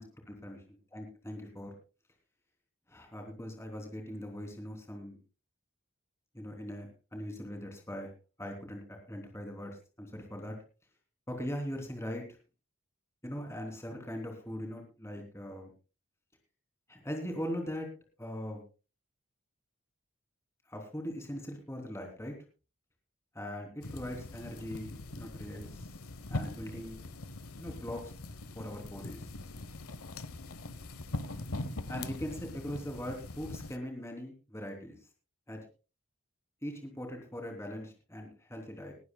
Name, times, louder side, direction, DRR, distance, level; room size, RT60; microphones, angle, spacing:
voice 1, 0.0-0.6 0.9-1.7 2.9-5.2 6.3-8.1 8.4-10.6 11.3-12.2 13.2-15.7 16.9-17.9 18.2-18.6 20.7-22.3 23.3-25.9 26.3-27.0 27.6-28.1 28.5-29.3 31.9-35.0 35.5-35.6 36.6-38.9, equal, 10° left, 2 dB, 3.2 m, -40 dB
sound 1, 23.8-33.8, left 2 dB, 90° left, 1.0 m, -42 dB
20.0 x 15.0 x 2.3 m, 0.33 s
head